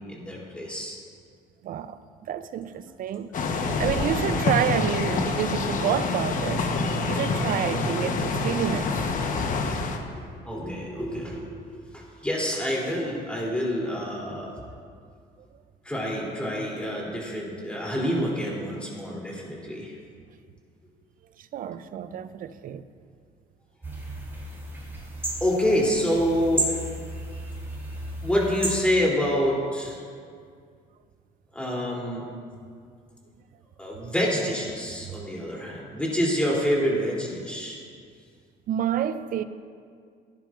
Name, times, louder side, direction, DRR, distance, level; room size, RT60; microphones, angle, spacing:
voice 1, 0.1-1.0 10.2-14.5 15.8-19.9 25.4-26.8 27.3-27.5 28.2-30.0 31.5-32.3 33.8-37.8, equal, 5° left, 3.0 m, -27 dB
voice 2, 1.6-2.0 2.3-3.3 3.8-6.7 7.1-8.9 21.5-22.8 38.7-39.4, right 9 dB, 55° right, 0.5 m, -28 dB
sound 1, 3.3-10.0, left 3 dB, 50° left, 1.1 m, -26 dB
sound 2, 23.8-28.8, right 1 dB, 15° right, 3.0 m, -33 dB
16.0 x 10.5 x 2.5 m
cardioid pair, 110°, 17 cm